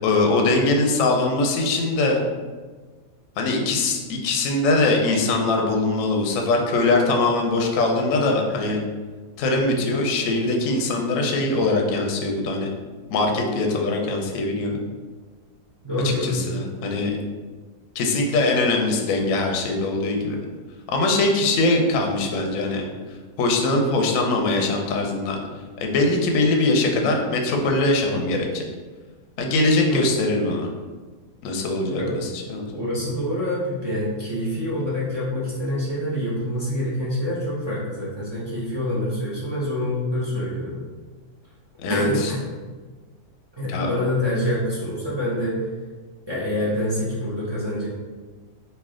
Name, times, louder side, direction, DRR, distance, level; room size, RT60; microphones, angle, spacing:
voice 1, 0.0-2.2 3.4-8.8 9.4-12.7 13.1-14.8 16.2-17.2 18.0-20.4 20.9-22.8 23.4-25.4 25.8-28.6 29.4-30.7 31.4-32.8 41.8-42.3 43.7-43.9, left 2 dB, 65° left, 1 dB, 0.9 m, -22 dB
voice 2, 15.8-16.3 29.9-30.0 32.0-32.2 32.7-40.8 41.9-42.4 43.6-45.6 46.3-47.9, left 1 dB, 40° right, -8 dB, 0.3 m, -26 dB
3.2 x 2.7 x 3.6 m, 1.4 s
omnidirectional pair, 1.8 m